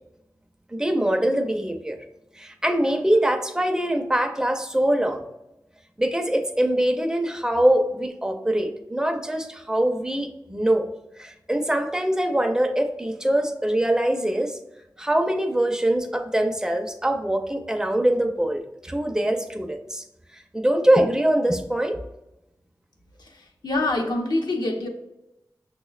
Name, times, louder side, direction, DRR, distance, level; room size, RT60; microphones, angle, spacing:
voice 1, 0.7-2.0 2.3-5.2 6.0-10.9 11.2-14.6 15.0-20.0 20.3-22.0, right 1 dB, 10° right, 4 dB, 0.5 m, -23 dB
voice 2, 23.2-24.9, left 2 dB, 75° left, 1 dB, 0.6 m, -26 dB
6.1 x 2.1 x 2.3 m, 0.90 s
wide cardioid pair, 55°, 7 cm